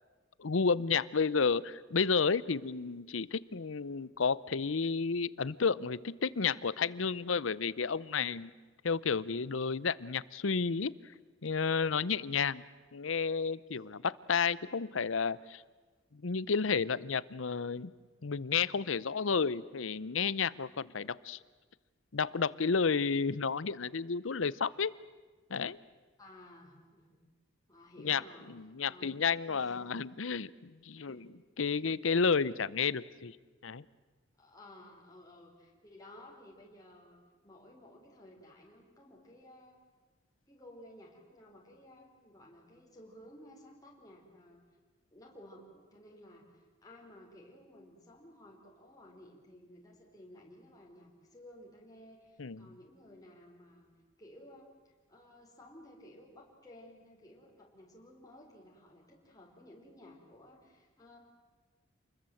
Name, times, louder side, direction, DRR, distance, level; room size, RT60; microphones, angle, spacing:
voice 1, 0.4-8.5 8.8-10.9 11.4-12.6 12.9-15.6 16.1-17.9 18.2-21.4 22.1-24.9 25.5-25.8 28.0-28.2 28.5-31.2 31.6-33.4 33.6-33.8 52.4-52.7, left 5 dB, 80° left, 20 dB, 0.7 m, -31 dB
voice 2, 26.2-27.2 27.7-28.5 28.9-29.9 31.0-31.3 31.6-31.8 34.4-39.8 40.5-44.7 45.1-53.9 54.2-61.2, left 1 dB, 20° left, -2 dB, 4.3 m, -55 dB
28.5 x 21.0 x 7.8 m, 1.3 s
head